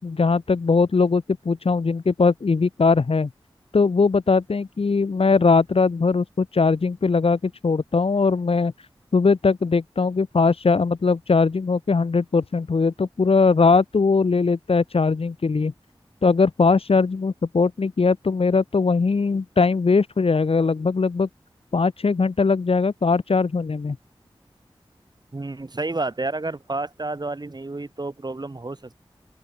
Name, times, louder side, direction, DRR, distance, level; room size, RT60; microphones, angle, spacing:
voice 1, 0.0-3.3 3.7-8.7 9.1-15.7 16.2-21.3 21.7-24.0, left 4 dB, 90° left, 3.5 m, -20 dB
voice 2, 25.3-28.9, right 2 dB, 45° right, 5.9 m, -30 dB
open air
wide cardioid pair, 70°, 10 cm